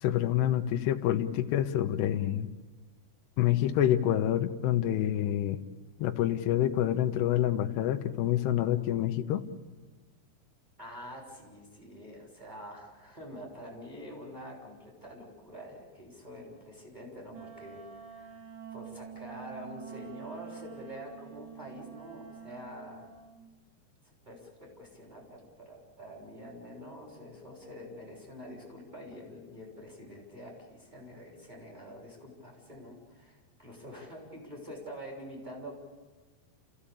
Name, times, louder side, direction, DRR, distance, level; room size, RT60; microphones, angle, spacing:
voice 1, 0.0-2.5 3.4-5.6 6.0-9.4, left 12 dB, 75° left, 5 dB, 3.0 m, -27 dB
voice 2, 10.8-17.8 18.1-18.4 18.7-23.1 24.0-35.8, equal, 10° right, -1 dB, 6.4 m, -46 dB
Wind instrument woodwind instrument, 17.3-23.4, right 8 dB, 80° right, 4.3 m, -47 dB
30.0 x 16.0 x 8.6 m, 1.3 s
omnidirectional pair, 5.2 m